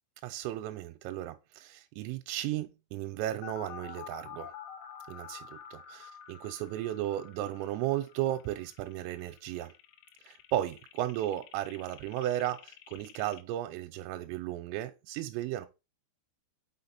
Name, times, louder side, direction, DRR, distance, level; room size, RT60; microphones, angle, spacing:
voice 1, 0.2-4.5 5.1-9.7 10.2-15.7, right 13 dB, 85° right, 3.3 m, -35 dB
sound 1, 3.4-13.4, left 8 dB, 80° left, 3.0 m, -49 dB
6.3 x 5.9 x 4.1 m
omnidirectional pair, 6.0 m